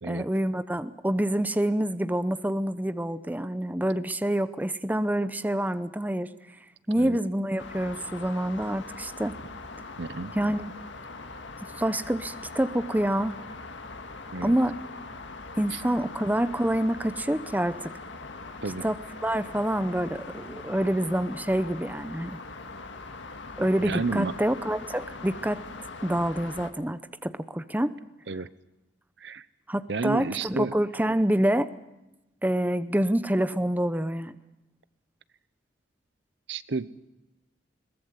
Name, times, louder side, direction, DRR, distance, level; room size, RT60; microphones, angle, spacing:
voice 1, 0.0-6.3 6.9-9.3 10.4-10.6 11.8-13.4 14.4-14.7 15.6-17.9 18.8-22.4 23.6-25.6 26.0-27.9 29.7-31.7 32.4-34.4, right 1 dB, 10° right, 12 dB, 0.7 m, -27 dB
sound 1, 7.6-26.7, left 3 dB, 80° left, 1.9 m, -42 dB
voice 2, 9.8-10.3 14.3-14.6 15.7-15.8 18.6-18.9 23.8-24.3 28.3-28.5 29.2-29.5 29.9-30.7 36.5-36.9, right 3 dB, 65° right, 16 dB, 0.8 m, -31 dB
22.0 x 19.5 x 8.2 m, 0.94 s
head